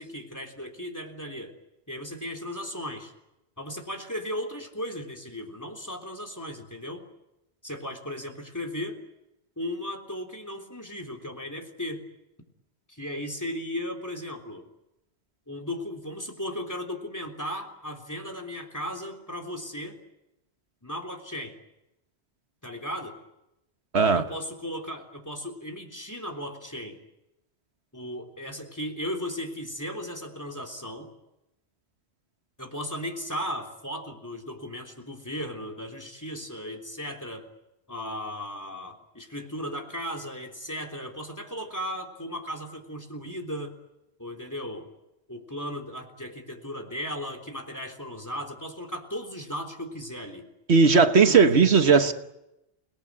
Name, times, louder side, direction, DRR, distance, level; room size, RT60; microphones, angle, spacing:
voice 1, 0.0-1.5 1.9-3.1 3.6-7.0 7.6-9.0 9.6-12.0 12.9-14.7 15.5-20.0 20.8-21.6 22.6-23.2 24.0-27.0 27.9-31.1 32.6-37.5 37.9-43.8 44.2-44.9 45.3-50.5 51.3-51.4, equal, 15° left, 3.5 m, -36 dB
voice 2, 50.7-52.1, right 5 dB, 75° right, 1.6 m, -17 dB
29.5 x 19.0 x 9.7 m
omnidirectional pair, 1.1 m